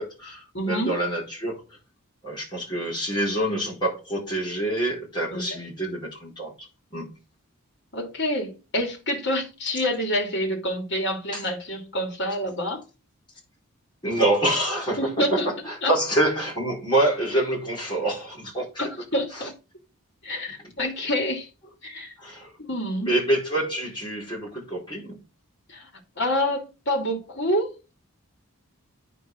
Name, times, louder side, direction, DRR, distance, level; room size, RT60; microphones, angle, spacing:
voice 1, 0.0-1.6 2.2-7.1 11.3-11.4 14.0-18.7 19.3-19.5 22.2-22.5 23.1-25.2, right 1 dB, 20° left, 4.7 m, -26 dB
voice 2, 0.5-1.0 5.3-5.6 7.9-12.8 15.0-15.5 15.8-15.9 18.8-19.5 20.2-21.5 21.8-22.1 22.6-23.1 25.7-25.9 26.2-27.7, equal, 50° left, 3.2 m, -27 dB
9.2 x 5.6 x 5.5 m
head